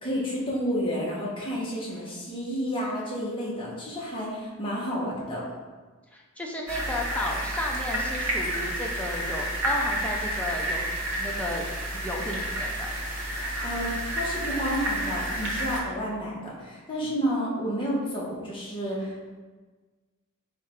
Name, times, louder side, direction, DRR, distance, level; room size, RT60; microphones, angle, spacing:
voice 1, 0.0-5.5 13.4-19.1, equal, 25° left, -6 dB, 1.0 m, -30 dB
voice 2, 6.1-10.9 11.2-12.9, left 1 dB, 5° left, -1 dB, 0.4 m, -33 dB
sound 1, 6.7-15.8, right 1 dB, 60° right, 0.8 m, -30 dB
4.7 x 2.4 x 4.3 m, 1.3 s
head